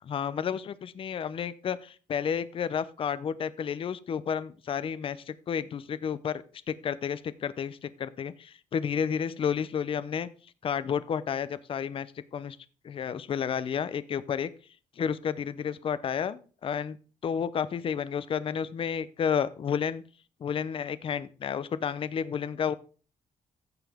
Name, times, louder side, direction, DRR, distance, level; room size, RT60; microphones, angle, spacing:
voice 1, 0.0-10.3 10.6-12.1 12.3-12.6 12.8-14.5 15.0-17.0 17.2-20.0 20.4-22.7, left 7 dB, 45° left, 15 dB, 0.6 m, -31 dB
15.0 x 5.6 x 3.5 m, 0.38 s
cardioid pair, 150°, 13 cm